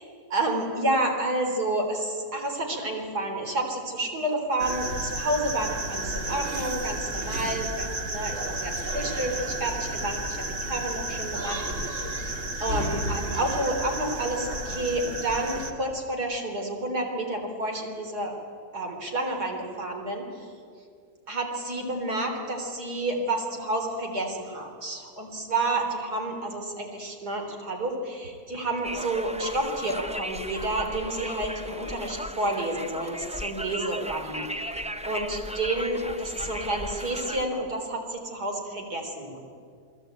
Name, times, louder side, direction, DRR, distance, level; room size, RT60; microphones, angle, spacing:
voice 1, 0.3-11.6 12.6-18.4 18.7-20.3 21.3-34.4 35.0-39.4, right 2 dB, 80° right, 2 dB, 4.3 m, -30 dB
sound 1, 4.6-15.7, right 1 dB, 50° right, 2.5 m, -32 dB
Conversation, 28.8-37.5, equal, 10° right, 0.4 m, -36 dB
28.5 x 21.0 x 9.1 m, 2.3 s
omnidirectional pair, 1.7 m